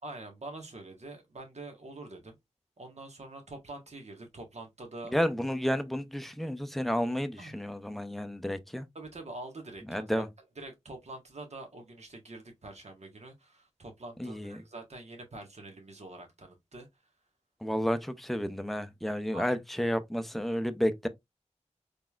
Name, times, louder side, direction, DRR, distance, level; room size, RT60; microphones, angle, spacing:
voice 1, 0.0-2.3 2.8-5.2 7.4-7.6 8.9-10.0 10.6-16.9 19.3-19.5, right 2 dB, 65° right, 1.4 m, -45 dB
voice 2, 5.1-8.9 9.9-10.3 14.2-14.6 17.6-21.1, equal, ahead, 0.6 m, -31 dB
4.0 x 3.4 x 2.3 m
wide cardioid pair, 65°, 12 cm